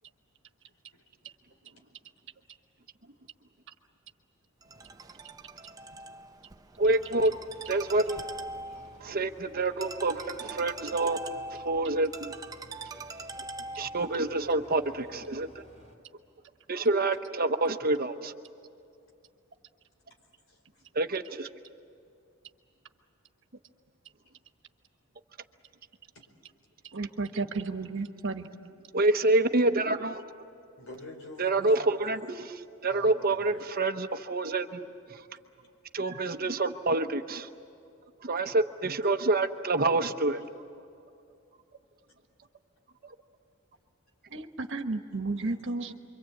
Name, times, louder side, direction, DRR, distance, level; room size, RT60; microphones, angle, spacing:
Ringtone, 4.6-14.2, right 2 dB, 15° right, 0.8 m, -42 dB
voice 1, 6.8-7.3 7.7-8.2 9.0-11.2 11.5-12.3 13.8-15.6 16.7-18.3 20.9-21.5 28.9-30.2 31.4-34.8 35.1-35.2 35.9-37.5 38.2-40.4 43.0-43.1, right 2 dB, 45° right, 8 dB, 1.0 m, -27 dB
sound 1, 7.0-15.9, equal, 30° left, 4.5 m, -55 dB
voice 2, 20.2-20.8 26.1-26.3 30.8-31.8 32.9-33.7 45.1-45.9, left 1 dB, 70° left, 3 dB, 5.0 m, -48 dB
voice 3, 26.9-28.5 44.3-45.9, right 3 dB, 60° right, 7 dB, 1.3 m, -33 dB
28.0 x 24.0 x 8.6 m, 2.5 s
head